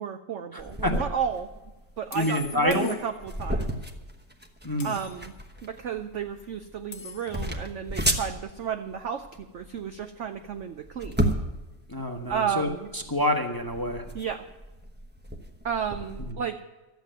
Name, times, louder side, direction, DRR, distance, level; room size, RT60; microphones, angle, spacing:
voice 1, 0.0-1.5 2.0-3.7 4.8-5.3 5.6-11.3 12.3-12.9 14.1-14.4 15.6-16.6, right 7 dB, 65° right, 8 dB, 0.7 m, -32 dB
voice 2, 0.5-0.9 2.1-2.9 4.6-5.0 11.9-14.0 16.2-16.3, left 1 dB, 15° left, 3 dB, 1.0 m, -27 dB
sound 1, 0.6-0.8 2.1-3.5 4.8-5.4 6.9-7.6, left 6 dB, 60° left, 1.5 m, -45 dB
sound 2, 0.6-16.3, right 1 dB, 10° right, 0.8 m, -34 dB
13.0 x 8.3 x 9.0 m, 1.1 s
omnidirectional pair, 1.9 m